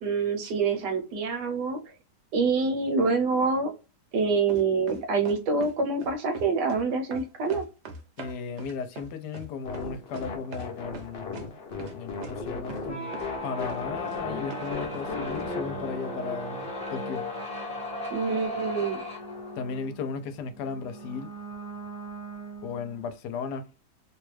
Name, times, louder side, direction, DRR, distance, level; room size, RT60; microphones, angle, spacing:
voice 1, 0.0-1.8 2.3-3.7 4.1-7.6 18.1-19.0, right 4 dB, 80° right, 1.4 m, -26 dB
sound 1, 4.5-5.7 6.0-6.8 7.1-10.7 10.9-11.5 11.8-11.9 12.2-12.3 12.7-12.9 13.1-13.3 13.6-14.2 14.5-15.1 15.3-15.4, right 3 dB, 55° right, 0.8 m, -41 dB
voice 2, 8.2-11.4 11.9-13.1 13.4-17.2 19.6-21.3 22.6-23.7, left 5 dB, 80° left, 1.1 m, -35 dB
sound 2, 9.6-17.1, left 4 dB, 55° left, 0.7 m, -37 dB
sound 3, 12.8-23.1, equal, 5° left, 0.7 m, -37 dB
3.2 x 2.2 x 3.1 m
omnidirectional pair, 1.8 m